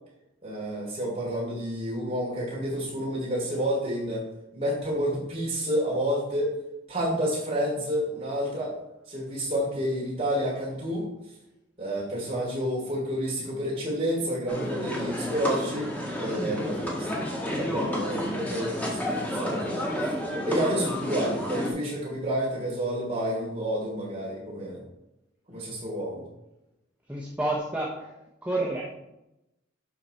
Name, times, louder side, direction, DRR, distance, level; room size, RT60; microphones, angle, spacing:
voice 1, 0.4-4.2 4.5-6.5 6.9-8.7 9.1-11.1 11.8-15.9 16.2-17.1 17.5-19.8 20.4-24.8 25.5-26.2, equal, 30° right, -4 dB, 3.1 m, -29 dB
sound 1, 14.5-21.7, equal, 10° left, 1.7 m, -31 dB
voice 2, 16.2-16.8 27.1-28.2 28.4-28.9, right 2 dB, 10° right, -4 dB, 0.9 m, -30 dB
11.5 x 4.1 x 4.4 m, 0.90 s
head